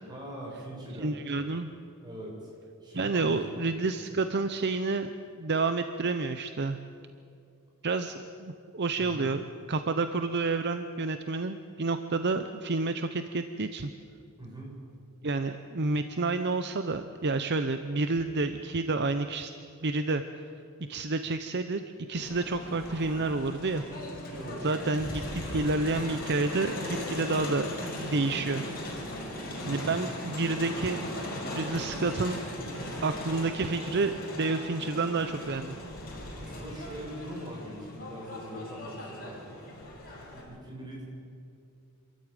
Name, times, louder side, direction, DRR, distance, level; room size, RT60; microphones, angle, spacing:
voice 1, 0.1-1.4 2.0-2.5 2.8-3.6 3.9-4.1 9.0-9.3 14.4-14.8 24.3-24.6 29.7-30.0 36.3-39.7 40.3-41.0, right 1 dB, 20° right, -3 dB, 7.1 m, -42 dB
voice 2, 1.0-1.7 2.9-5.1 5.4-6.8 7.8-13.9 15.2-19.5 19.8-20.2 20.9-21.8 22.1-23.8 24.6-27.7 27.9-28.6 29.6-31.1 31.5-32.4 33.0-35.8, right 3 dB, 50° right, 9 dB, 0.7 m, -29 dB
Crowd, 22.2-40.4, left 1 dB, 45° left, 5.8 m, -38 dB
27.0 x 14.0 x 9.1 m, 2.5 s
head